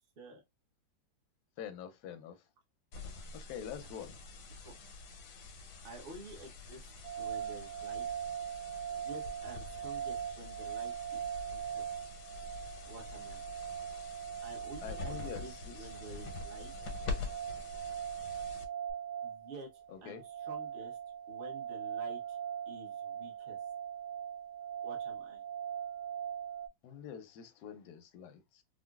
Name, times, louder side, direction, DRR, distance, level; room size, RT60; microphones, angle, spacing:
voice 1, 1.6-2.4 3.3-4.2 14.8-15.9 19.9-20.2 26.8-28.6, left 8 dB, 70° left, 1.0 m, -45 dB
sound 1, 2.9-18.9, left 4 dB, 85° left, 1.4 m, -46 dB
voice 2, 5.8-6.9 7.2-8.2 9.0-11.3 11.5-11.8 12.9-13.4 14.4-16.7 19.2-21.0 21.3-22.4 22.7-23.6 24.8-25.4, right 1 dB, 40° right, 0.9 m, -50 dB
sound 2, 7.0-26.7, right 9 dB, 65° right, 1.4 m, -41 dB
3.8 x 2.1 x 2.3 m
omnidirectional pair, 2.1 m